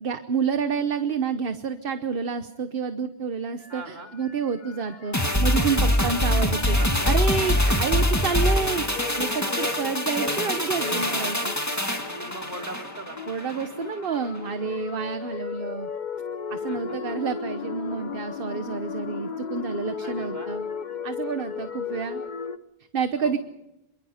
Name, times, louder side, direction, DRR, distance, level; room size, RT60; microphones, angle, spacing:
voice 1, 0.0-6.8 7.0-11.6 13.3-15.9 16.5-20.7 21.0-22.2 22.9-23.4, right 6 dB, 55° right, 9 dB, 1.2 m, -29 dB
sound 1, 3.6-22.6, left 6 dB, 45° left, 1.0 m, -36 dB
voice 2, 3.7-4.1 6.8-7.1 12.1-13.2 16.7-17.2 20.0-20.5 23.2-23.4, right 1 dB, 40° right, 2 dB, 3.3 m, -40 dB
sound 2, 5.1-13.7 14.0-14.1, left 1 dB, 15° left, 2.0 m, -24 dB
27.0 x 23.5 x 5.1 m, 0.90 s
omnidirectional pair, 1.2 m